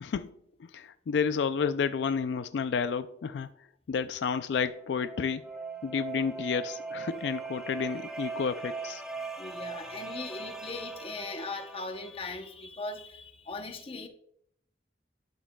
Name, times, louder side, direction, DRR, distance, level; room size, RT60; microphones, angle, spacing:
voice 1, 0.0-0.3 0.6-3.5 3.9-5.5 5.8-9.0, left 6 dB, 80° left, 0.3 m, -31 dB
sound 1, 4.6-12.3, right 4 dB, 5° right, 0.8 m, -40 dB
voice 2, 9.4-14.1, left 3 dB, 30° left, 0.7 m, -39 dB
12.0 x 6.2 x 2.2 m
head